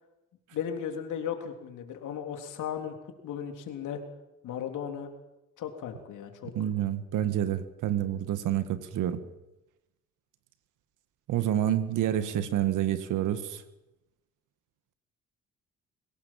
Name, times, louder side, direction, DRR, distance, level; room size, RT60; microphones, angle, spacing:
voice 1, 0.5-3.0 3.2-4.0 4.4-5.1 5.6-6.5, left 8 dB, 80° left, 5 dB, 3.5 m, -36 dB
voice 2, 6.5-9.2 11.3-13.6, right 11 dB, 85° right, 11 dB, 1.9 m, -28 dB
23.5 x 18.0 x 7.6 m, 0.94 s
cardioid pair, 90°, 30 cm